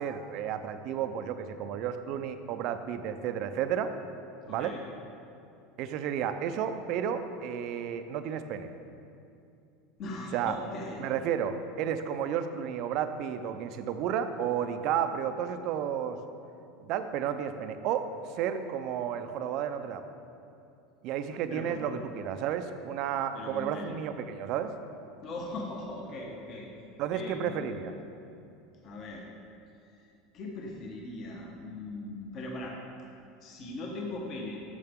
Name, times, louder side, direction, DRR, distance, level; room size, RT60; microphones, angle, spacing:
voice 1, 0.0-3.9 4.5-4.7 5.8-8.7 10.3-10.5 11.0-16.2 16.8-20.0 21.0-24.7 27.0-27.9, right 8 dB, 45° right, 9 dB, 0.5 m, -32 dB
voice 2, 4.5-4.8 10.0-11.0 21.5-21.8 23.3-23.9 25.2-26.7 27.1-27.8 28.8-29.3 30.3-32.8 33.4-34.6, left 2 dB, 35° left, -1 dB, 1.0 m, -39 dB
12.5 x 6.9 x 3.6 m, 2.6 s
supercardioid pair, 170°, 0 cm